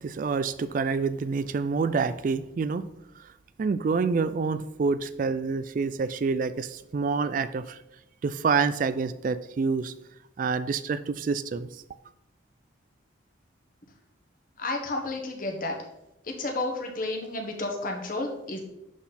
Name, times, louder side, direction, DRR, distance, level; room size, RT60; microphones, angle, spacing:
voice 1, 0.0-2.9 3.6-7.8 8.2-9.9 10.4-11.7, right 4 dB, 45° right, 14 dB, 0.3 m, -27 dB
voice 2, 14.6-15.7 16.2-18.6, left 2 dB, 45° left, 2 dB, 1.3 m, -31 dB
11.0 x 4.1 x 4.2 m, 0.88 s
head